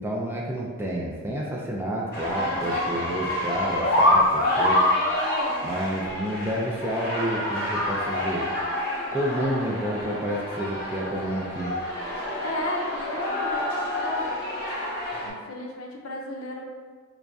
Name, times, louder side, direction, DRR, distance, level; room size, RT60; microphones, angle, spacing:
voice 1, 0.0-4.8 5.6-8.4 9.1-11.8, right 1 dB, 10° right, -3 dB, 0.3 m, -29 dB
sound 1, 2.1-15.3, left 1 dB, 55° left, 1.0 m, -27 dB
voice 2, 5.4-5.9 12.4-14.4 15.2-16.6, left 1 dB, 85° left, 1 dB, 0.5 m, -34 dB
3.0 x 2.5 x 3.4 m, 1.5 s
head